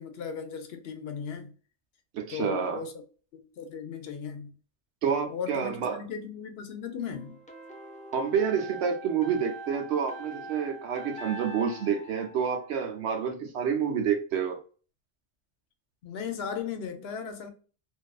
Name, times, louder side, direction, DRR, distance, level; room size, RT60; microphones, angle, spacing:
voice 1, 0.0-1.5 2.3-3.0 3.3-4.5 5.3-7.4 16.0-17.5, left 7 dB, 70° left, 0.8 m, -37 dB
voice 2, 2.1-2.8 5.0-6.0 8.1-14.6, right 7 dB, 75° right, 0.9 m, -28 dB
sound 1, 7.1-13.1, right 1 dB, 10° left, 0.3 m, -43 dB
2.6 x 2.4 x 2.3 m
omnidirectional pair, 1.1 m